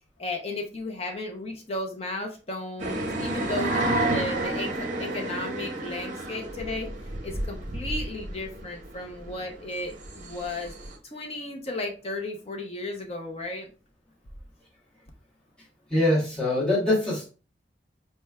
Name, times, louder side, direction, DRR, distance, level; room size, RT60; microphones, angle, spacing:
voice 1, 0.2-6.9 7.2-10.7 11.0-13.7, left 2 dB, 35° left, 2 dB, 0.7 m, -34 dB
sound 1, 2.8-10.9, right 2 dB, 45° right, 0.8 m, -31 dB
voice 2, 15.9-17.3, left 1 dB, 5° left, -8 dB, 1.4 m, -23 dB
4.4 x 3.2 x 2.3 m, 0.34 s
head